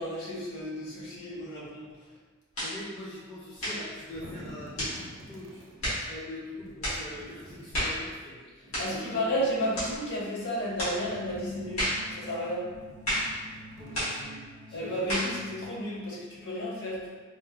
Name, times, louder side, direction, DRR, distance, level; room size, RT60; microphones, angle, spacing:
voice 1, 0.0-1.9 8.8-12.7 14.7-17.1, equal, 55° left, -7 dB, 1.0 m, -32 dB
sound 1, 2.5-2.8 3.6-3.9 4.8-5.0 5.8-6.1 6.8-7.0 7.7-8.0 8.7-9.0 9.7-10.0 10.8-11.0 11.8-12.1 13.0-13.3 13.9-14.2 15.1-15.4, equal, 85° left, 1.5 m, -30 dB
voice 2, 2.6-9.3 13.7-15.1, left 1 dB, 25° left, -8 dB, 0.5 m, -43 dB
sound 2, 3.9-5.8 6.6-8.2 9.1-10.2 10.5-12.1 12.6-14.4, right 1 dB, 65° right, 0.7 m, -50 dB
sound 3, 10.9-15.7, right 4 dB, 40° right, 0.3 m, -48 dB
4.2 x 2.0 x 2.3 m, 1.4 s
head